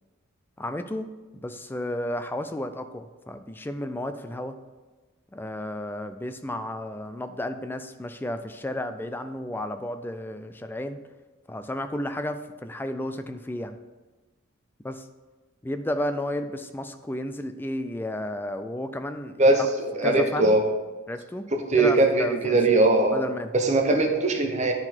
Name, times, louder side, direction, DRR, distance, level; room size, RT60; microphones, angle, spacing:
voice 1, 0.6-4.6 5.3-11.0 11.5-13.8 14.8-15.1 15.6-19.6 20.0-20.6 21.1-21.5 21.8-22.6 23.1-23.5, left 1 dB, 10° left, 9 dB, 0.3 m, -32 dB
voice 2, 19.9-20.7 21.7-23.2 23.5-24.7, right 2 dB, 35° right, 3 dB, 0.8 m, -20 dB
9.6 x 3.9 x 4.5 m, 1.2 s
head